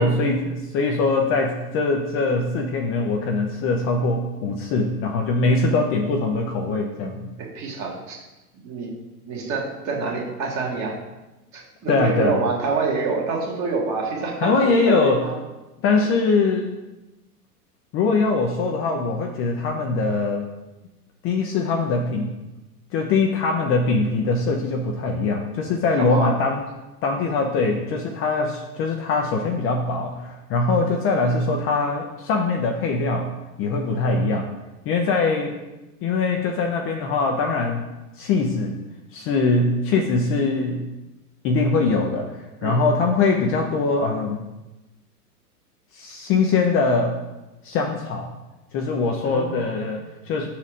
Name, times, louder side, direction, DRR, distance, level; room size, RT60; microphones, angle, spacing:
voice 1, 0.0-7.3 11.9-12.4 14.4-15.2 15.8-16.7 17.9-20.5 21.2-22.3 22.9-26.6 27.0-33.3 33.6-34.5 34.8-35.6 36.0-37.8 38.2-38.8 39.1-40.8 41.4-44.4 45.9-47.2 47.6-48.3 48.7-50.5, left 3 dB, 30° left, 2 dB, 0.6 m, -22 dB
voice 2, 7.4-8.2 8.6-8.9 9.3-11.0 11.5-15.4 25.9-26.3 33.9-34.0 42.6-42.8 49.2-49.8, right 4 dB, 35° right, -1 dB, 1.8 m, -27 dB
5.9 x 4.3 x 5.0 m, 1.0 s
hypercardioid pair, 100°, 47 cm